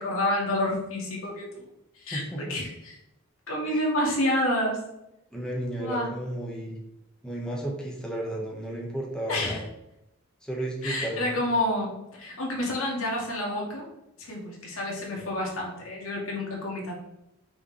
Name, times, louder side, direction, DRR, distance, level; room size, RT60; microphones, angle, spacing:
voice 1, 0.0-1.7 2.0-2.9 3.5-4.8 5.8-6.1 9.3-9.6 10.8-13.9 14.2-16.9, left 1 dB, 75° left, -2 dB, 2.2 m, -29 dB
voice 2, 2.1-2.5 3.6-3.8 5.3-6.8 7.2-9.6 10.4-11.2, right 1 dB, 5° left, -3 dB, 1.5 m, -33 dB
6.0 x 5.3 x 3.4 m, 0.86 s
head